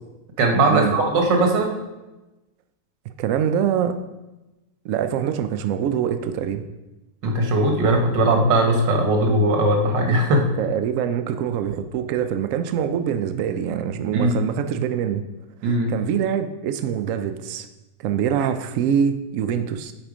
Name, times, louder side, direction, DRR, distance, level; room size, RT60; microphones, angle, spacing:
voice 1, 0.4-1.8 7.2-10.5 14.1-14.4 15.6-15.9, right 2 dB, 90° right, 2 dB, 1.8 m, -19 dB
voice 2, 3.2-4.0 4.8-6.6 10.6-15.2 15.6-17.7 18.0-19.9, right 8 dB, 75° right, 9 dB, 0.7 m, -24 dB
7.7 x 4.4 x 5.0 m, 1.0 s
omnidirectional pair, 1.9 m